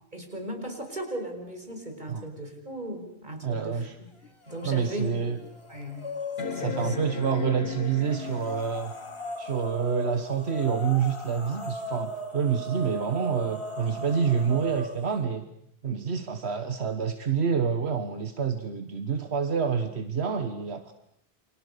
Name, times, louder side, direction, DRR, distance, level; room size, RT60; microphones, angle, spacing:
voice 1, 0.1-4.1 4.5-5.4 5.7-6.1 6.4-7.0, right 1 dB, 45° right, 4 dB, 5.4 m, -37 dB
voice 2, 3.4-3.9 4.6-5.4 6.5-8.9 9.4-15.4 15.8-20.9, right 6 dB, 80° right, 8 dB, 1.6 m, -27 dB
sound 1, 4.2-4.3 4.9-5.0 6.4-8.9 10.6-10.7, left 5 dB, 70° left, 1.7 m, -35 dB
sound 2, 4.4-5.1 5.4-7.2 8.0-15.2, equal, 25° left, 2.7 m, -37 dB
29.5 x 26.0 x 6.8 m, 0.71 s
omnidirectional pair, 1.1 m